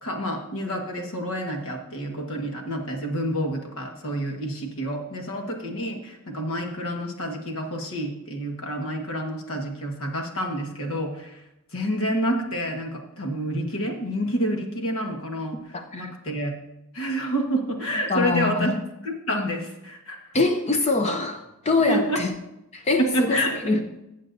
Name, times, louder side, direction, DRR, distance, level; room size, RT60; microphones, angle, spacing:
voice 1, 0.0-11.4 11.7-16.6 16.9-18.7 19.0-20.2 21.9-22.2 23.0-23.6, equal, 65° left, 3 dB, 1.5 m, -28 dB
voice 2, 15.7-16.1 18.1-18.8 20.3-22.3 22.7-23.8, left 3 dB, 30° left, 6 dB, 0.5 m, -24 dB
14.5 x 7.5 x 2.7 m, 0.90 s
head